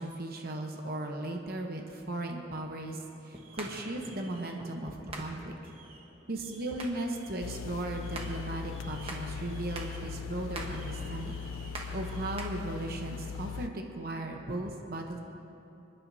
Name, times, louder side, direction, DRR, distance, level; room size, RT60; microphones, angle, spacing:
voice 1, 0.0-5.5 6.3-15.2, right 1 dB, 50° right, 2 dB, 0.9 m, -37 dB
sound 1, 3.3-12.5, right 2 dB, 30° right, 1.2 m, -45 dB
sound 2, 7.4-13.7, left 6 dB, 90° left, 0.3 m, -40 dB
26.5 x 10.0 x 2.8 m, 2.7 s
head